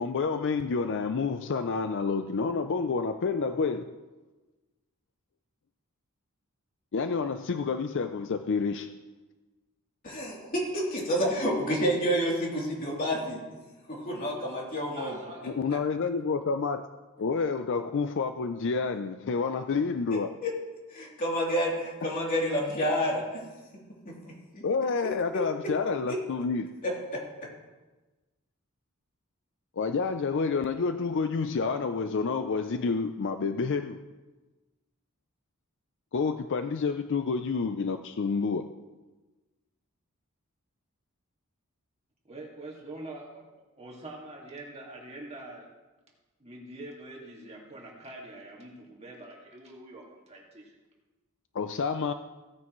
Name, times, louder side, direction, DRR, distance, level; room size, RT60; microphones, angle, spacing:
voice 1, 0.0-3.9 6.9-8.9 15.4-16.8 17.2-20.3 24.6-26.7 29.8-34.0 36.1-38.7 51.5-52.1, left 4 dB, 55° left, 9 dB, 0.4 m, -29 dB
voice 2, 10.0-13.4 13.9-15.2 20.4-20.5 20.9-23.4 24.0-24.1 24.5-24.6 25.3-25.4 26.1-26.2 26.8-27.2, equal, 40° left, -4 dB, 3.2 m, -29 dB
voice 3, 15.0-15.6 42.2-43.5 43.8-45.7 46.4-50.8, right 2 dB, 30° right, -2 dB, 2.1 m, -44 dB
16.5 x 9.4 x 3.1 m, 1.2 s
head